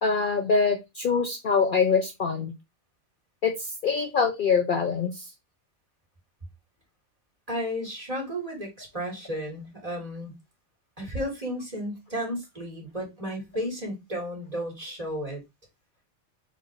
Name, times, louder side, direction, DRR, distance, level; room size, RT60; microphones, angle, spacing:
voice 1, 0.0-2.5 3.4-5.2, left 5 dB, 55° left, 0.7 m, -24 dB
voice 2, 7.5-10.3 11.0-15.4, equal, 30° right, 2.1 m, -33 dB
4.1 x 2.6 x 4.5 m
omnidirectional pair, 1.2 m